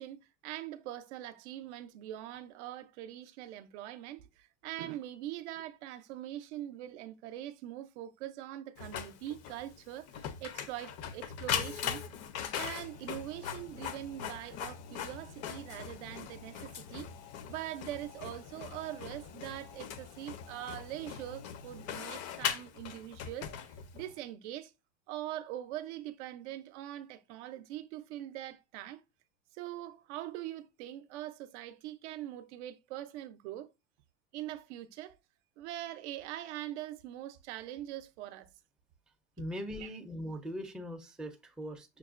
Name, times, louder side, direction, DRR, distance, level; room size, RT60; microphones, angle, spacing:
voice 1, 0.0-12.0 12.5-17.1 17.5-23.5 23.9-24.7 25.1-29.0 29.5-33.7 34.3-35.2 35.6-38.5 39.7-40.0, right 13 dB, 75° right, 0.6 m, -43 dB
Printer, 8.8-24.1, left 8 dB, 45° left, 0.6 m, -40 dB
voice 2, 39.4-42.0, equal, ahead, 0.4 m, -40 dB
5.8 x 2.1 x 2.4 m
supercardioid pair, 125°, 34 cm